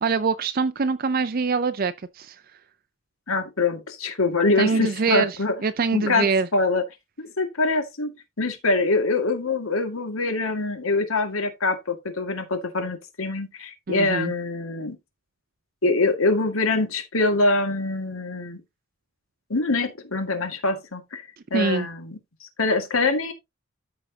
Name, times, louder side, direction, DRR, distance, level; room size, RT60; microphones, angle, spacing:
voice 1, 0.0-2.4 4.6-6.5 13.9-14.3 21.5-21.9, right 4 dB, 45° right, 0.5 m, -24 dB
voice 2, 3.3-5.5 5.9-6.3 6.5-6.8 7.2-15.0 15.8-18.6 19.5-21.2 21.5-22.2 22.6-23.3, left 3 dB, 80° left, 2.0 m, -24 dB
13.5 x 4.8 x 2.8 m
head